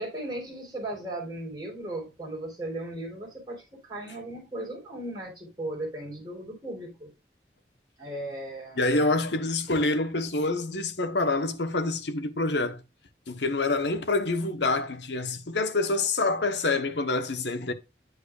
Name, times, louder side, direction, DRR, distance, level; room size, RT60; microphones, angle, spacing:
voice 1, 0.0-7.1 8.0-9.1 9.7-10.0, right 1 dB, 25° right, 4.3 m, -37 dB
voice 2, 8.8-12.8 13.3-17.7, left 2 dB, 80° left, 1.2 m, -27 dB
9.3 x 6.5 x 2.5 m
head